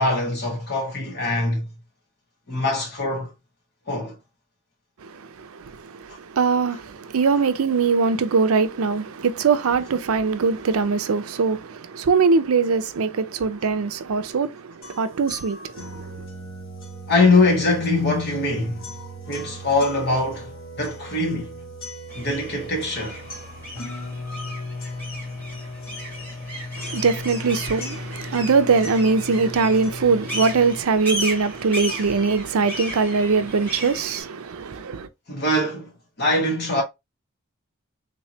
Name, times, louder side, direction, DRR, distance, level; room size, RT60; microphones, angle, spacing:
voice 1, 0.0-1.7 2.5-3.3 3.9-4.1 17.1-18.9 19.3-21.6 22.1-23.2 35.3-35.9 36.2-36.8, left 2 dB, 50° left, 1.6 m, -22 dB
voice 2, 5.4-16.0 26.8-35.1, right 4 dB, 85° right, 0.5 m, -22 dB
sound 1, 14.8-30.8, left 1 dB, 65° left, 1.1 m, -37 dB
sound 2, 22.1-34.2, equal, 10° left, 1.6 m, -35 dB
3.6 x 3.1 x 2.7 m
head